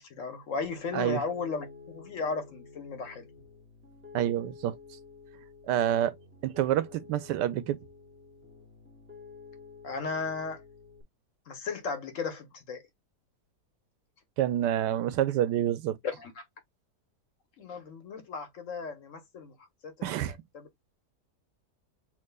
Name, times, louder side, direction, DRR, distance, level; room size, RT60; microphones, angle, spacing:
voice 1, 0.0-3.3 9.8-10.6 11.5-12.8 16.0-16.4 17.6-19.5 19.8-20.7, left 4 dB, 55° left, 1.1 m, -36 dB
Piano, 0.6-11.0, left 4 dB, 10° right, 0.9 m, -51 dB
voice 2, 4.1-4.7 5.7-6.1 6.4-7.8 14.4-16.0 20.0-20.4, right 11 dB, 90° right, 1.2 m, -27 dB
7.3 x 2.6 x 2.2 m
omnidirectional pair, 1.8 m